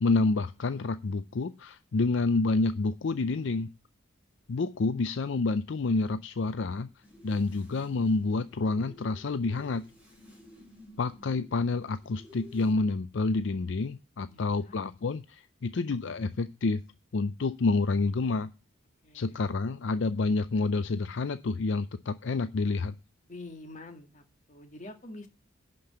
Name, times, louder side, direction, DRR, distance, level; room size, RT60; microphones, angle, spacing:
voice 1, 0.0-3.7 4.5-6.9 7.2-9.8 11.0-16.8 17.1-18.5 19.1-23.0, left 3 dB, 65° left, 12 dB, 0.5 m, -28 dB
sound 1, 7.0-12.7, left 1 dB, 10° right, 4.9 m, -53 dB
voice 2, 14.3-14.8 19.0-19.4 23.3-24.2 24.5-25.3, left 2 dB, 35° left, 5 dB, 2.0 m, -46 dB
11.5 x 5.3 x 8.0 m, 0.30 s
head